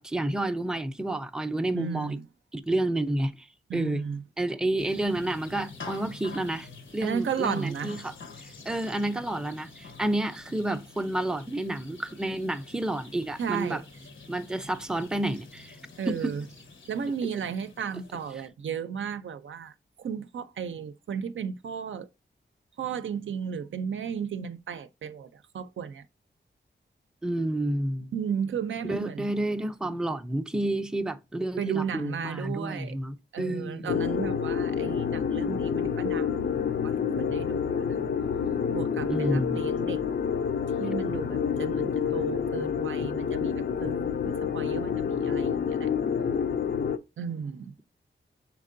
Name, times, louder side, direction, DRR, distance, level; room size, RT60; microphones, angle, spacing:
voice 1, 0.0-2.2 2.5-3.5 3.7-4.0 4.4-6.7 6.9-8.1 8.4-13.8 14.3-15.8 16.1-16.3 27.2-28.1 28.9-33.9 39.1-39.8, right 1 dB, 5° right, 0.4 m, -30 dB
voice 2, 1.7-2.3 3.7-4.2 7.0-7.9 13.4-13.8 16.0-16.5 16.9-22.1 22.8-26.0 28.1-29.3 31.6-33.0 33.3-36.4 36.8-38.0 38.7-40.0 40.8-45.9 47.2-47.7, right 7 dB, 80° right, 0.5 m, -34 dB
sound 1, 4.8-18.5, left 3 dB, 90° left, 1.0 m, -47 dB
sound 2, 33.9-47.0, left 7 dB, 60° left, 0.4 m, -28 dB
5.8 x 3.7 x 2.5 m
wide cardioid pair, 95°, 20 cm